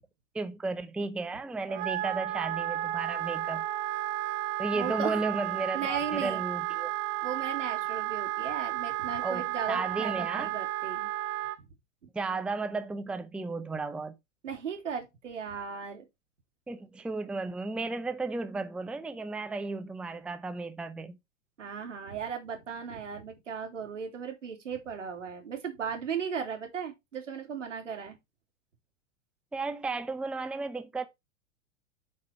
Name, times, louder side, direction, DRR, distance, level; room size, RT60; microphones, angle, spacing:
voice 1, 0.3-3.6 4.6-6.9 9.2-10.5 12.1-14.1 16.7-21.1 29.5-31.1, right 3 dB, 5° right, 0.6 m, -34 dB
Wind instrument woodwind instrument, 1.7-11.6, right 14 dB, 40° right, 1.0 m, -33 dB
voice 2, 4.7-5.2 5.7-6.4 7.2-11.1 14.4-16.0 21.6-28.1, right 6 dB, 75° right, 3.3 m, -36 dB
8.6 x 4.8 x 4.6 m
figure-of-eight pair, 100°, 37 cm